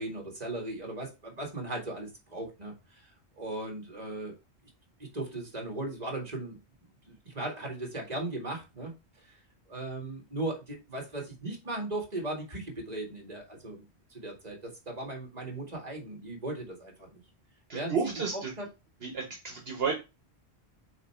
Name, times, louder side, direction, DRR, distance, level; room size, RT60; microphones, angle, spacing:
voice 1, 0.0-3.1 3.4-4.3 5.1-6.6 7.1-9.0 9.7-13.8 14.1-17.2 17.7-17.9 18.6-18.7, right 2 dB, 40° right, 1 dB, 2.1 m, -37 dB
voice 2, 17.7-18.5 19.0-19.9, right 5 dB, 65° right, 2 dB, 1.3 m, -32 dB
7.9 x 3.0 x 4.4 m, 0.27 s
omnidirectional pair, 1.1 m